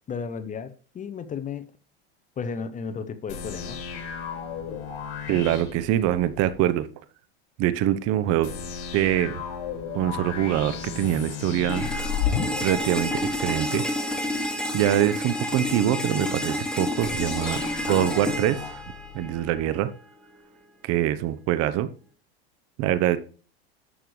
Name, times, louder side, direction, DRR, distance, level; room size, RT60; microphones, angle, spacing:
voice 1, 0.1-1.7 2.4-3.8, left 6 dB, 25° left, 0.9 m, -33 dB
sound 1, 3.3-6.6 8.4-13.6 17.0-19.6, left 7 dB, 65° left, 3.6 m, -34 dB
voice 2, 5.3-6.9 7.6-8.5 8.9-9.4 9.9-11.9 12.6-13.8 14.7-18.8 19.1-19.9 20.8-21.9 22.8-23.2, right 12 dB, 50° right, 0.9 m, -24 dB
sound 2, 11.7-19.7, left 1 dB, 5° left, 2.4 m, -30 dB
11.0 x 7.8 x 3.2 m
supercardioid pair, 110°, 32 cm